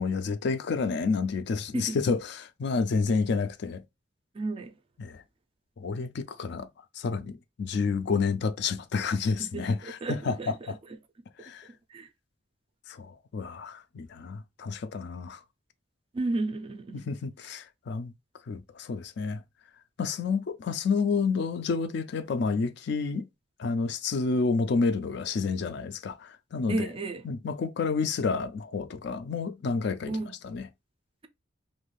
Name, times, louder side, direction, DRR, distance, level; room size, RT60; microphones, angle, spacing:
voice 1, 0.0-3.8 5.0-5.2 5.8-6.7 7.0-10.8 11.4-11.7 12.9-15.4 16.9-18.1 18.5-19.4 20.0-23.3 23.6-26.9 27.2-30.1 30.4-30.7, left 4 dB, 65° left, 0.4 m, -29 dB
voice 2, 4.3-4.7 9.4-10.8 11.9-12.1 16.1-17.1 26.7-27.2 30.1-30.4, right 2 dB, 30° right, 0.4 m, -33 dB
2.6 x 2.4 x 3.1 m
head